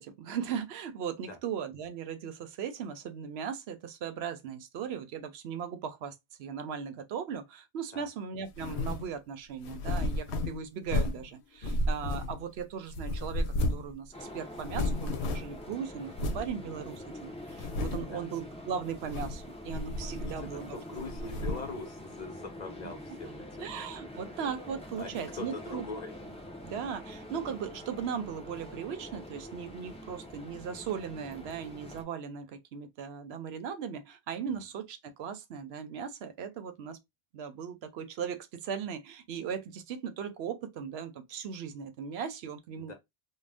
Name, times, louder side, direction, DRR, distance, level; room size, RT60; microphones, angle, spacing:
voice 1, 0.0-20.8 23.6-25.8 26.6-37.0 37.3-42.9, right 7 dB, 75° right, 0.8 m, -38 dB
sound 1, 8.5-9.1 9.6-11.3 11.6-12.6 12.9-13.9 14.2-14.3 14.6-15.6 16.1-16.5 17.0-17.1 17.5-18.2 18.9-19.4 19.7-20.6 20.9-21.8, left 1 dB, 85° left, 0.9 m, -32 dB
voice 2, 11.6-11.9 18.1-18.3 20.0-23.7 25.0-26.1 42.8-42.9, left 2 dB, 45° left, 0.9 m, -42 dB
sound 2, 14.1-32.0, left 1 dB, 5° left, 0.5 m, -45 dB
2.5 x 2.2 x 3.3 m
omnidirectional pair, 1.1 m